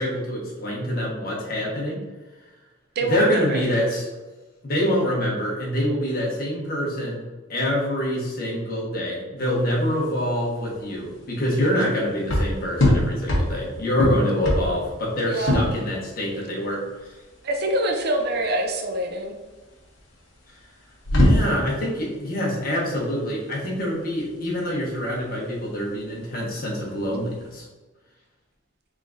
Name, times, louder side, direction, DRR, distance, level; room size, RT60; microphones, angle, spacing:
voice 1, 0.0-2.0 3.0-4.1 4.6-7.2 7.5-16.8 21.1-27.6, equal, 45° left, -4 dB, 1.2 m, -25 dB
voice 2, 3.0-3.6 15.2-15.6 17.4-19.3, right 1 dB, 50° right, 3 dB, 0.5 m, -25 dB
sound 1, 9.4-27.6, left 1 dB, 75° left, 1.0 m, -26 dB
3.7 x 3.6 x 2.5 m, 1.2 s
head